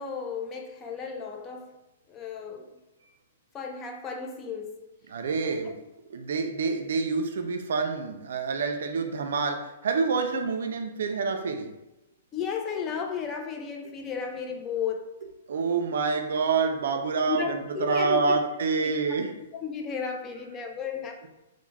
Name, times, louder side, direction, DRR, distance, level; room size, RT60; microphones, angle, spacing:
voice 1, 0.0-1.8 2.1-2.7 3.5-4.8 5.4-5.7 12.3-15.1 17.3-18.4 18.8-19.0 19.5-21.3, left 6 dB, 20° left, 3 dB, 0.4 m, -34 dB
voice 2, 5.1-5.8 6.1-11.7 15.5-19.3, right 4 dB, 75° right, 5 dB, 0.3 m, -27 dB
2.3 x 2.0 x 3.1 m, 0.97 s
hypercardioid pair, 140°, 0 cm